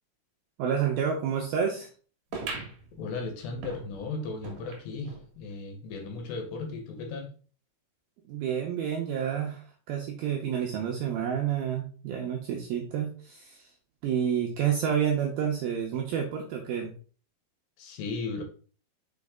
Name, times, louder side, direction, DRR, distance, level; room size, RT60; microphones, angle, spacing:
voice 1, 0.6-1.9 8.3-13.7 14.0-16.9, right 8 dB, 85° right, 1 dB, 2.2 m, -29 dB
sound 1, 2.3-5.3 5.7-5.8 6.0-6.1 6.9-7.0, right 4 dB, 60° right, 1.8 m, -41 dB
voice 2, 3.0-7.3 17.8-18.4, left 3 dB, 75° left, 5 dB, 3.0 m, -36 dB
6.3 x 5.2 x 3.6 m, 0.40 s
omnidirectional pair, 5.3 m